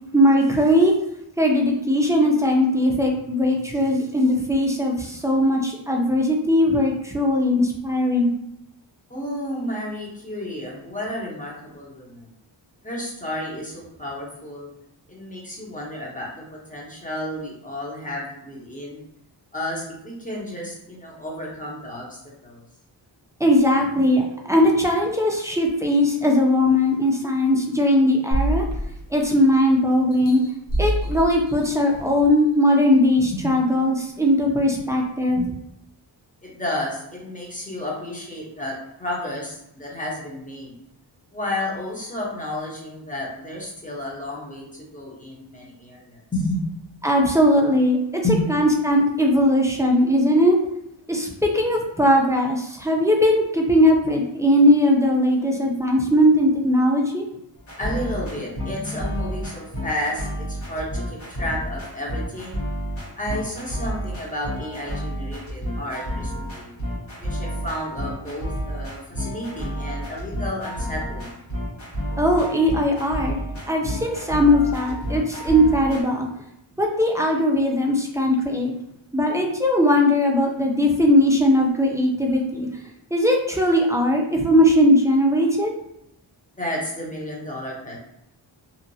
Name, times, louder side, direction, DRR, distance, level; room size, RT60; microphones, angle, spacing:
voice 1, 0.1-0.9 1.4-8.3 23.4-28.6 29.1-30.4 30.8-35.5 47.0-48.2 48.5-50.6 51.1-57.3 72.2-73.4 73.7-76.3 76.8-78.7 79.1-82.7 83.1-85.7, left 1 dB, 5° right, 0 dB, 0.4 m, -19 dB
voice 2, 9.1-12.3 12.8-14.7 15.1-16.4 16.7-19.0 19.5-22.6 33.3-33.5 36.4-40.7 41.3-46.6 48.2-48.4 57.8-62.6 63.2-66.7 67.2-71.3 86.6-88.0, left 1 dB, 15° left, -3 dB, 0.9 m, -31 dB
sound 1, 28.3-29.6 30.1-32.2 32.8-32.9, right 1 dB, 45° left, 0.7 m, -27 dB
sound 2, 57.6-76.0, equal, 80° left, 1.3 m, -30 dB
2.8 x 2.5 x 2.6 m, 0.80 s
wide cardioid pair, 100°, 46 cm